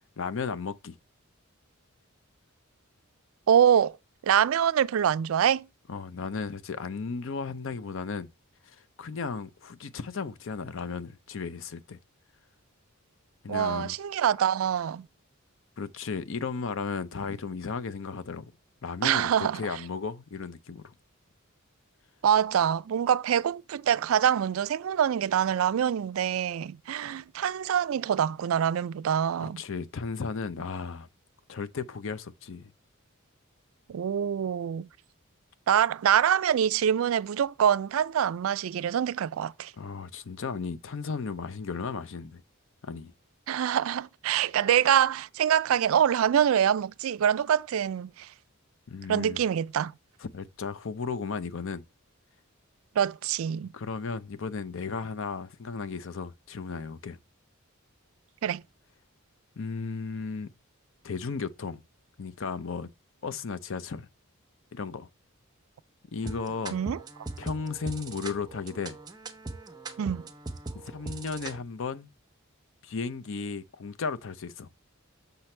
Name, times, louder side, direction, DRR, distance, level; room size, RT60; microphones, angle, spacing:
voice 1, 0.2-1.0 5.9-8.3 8.6-12.0 13.4-13.9 15.8-18.4 18.8-20.9 29.4-31.1 31.5-32.7 39.8-42.4 42.8-43.1 48.9-49.4 50.2-51.8 53.6-57.2 59.6-60.5 61.0-61.8 62.2-62.9 63.2-64.1 64.7-65.1 66.1-66.8 67.4-69.0 70.8-72.1 72.8-74.7, left 5 dB, 60° left, 0.6 m, -35 dB
voice 2, 3.5-4.0 4.2-5.7 13.5-15.1 19.0-19.6 22.2-29.6 33.9-34.9 35.7-39.7 43.5-48.3 49.1-49.9 53.0-53.7 58.4-58.6 66.7-67.0 70.0-70.3, right 9 dB, 70° right, 0.3 m, -25 dB
sound 1, 66.2-71.6, right 2 dB, 20° right, 0.9 m, -40 dB
6.8 x 5.9 x 3.2 m
head